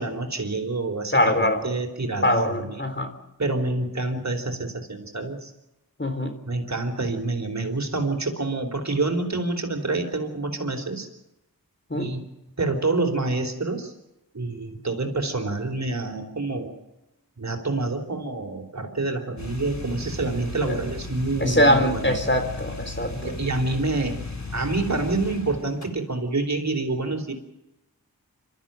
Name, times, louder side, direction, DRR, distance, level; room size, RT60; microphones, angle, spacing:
voice 1, 0.0-2.8 3.4-5.5 6.5-11.1 11.9-12.3 12.6-13.9 14.3-16.7 17.4-22.2 23.1-24.2 24.5-27.3, right 3 dB, 50° right, 5 dB, 4.2 m, -27 dB
voice 2, 1.1-1.6 2.2-3.1 6.0-6.3 11.9-12.1 20.6-20.8 21.4-23.3, left 1 dB, 30° left, 7 dB, 3.7 m, -22 dB
sound 1, 19.4-25.9, left 2 dB, 50° left, 3.4 m, -36 dB
26.5 x 13.5 x 9.1 m, 0.93 s
wide cardioid pair, 45°, 37 cm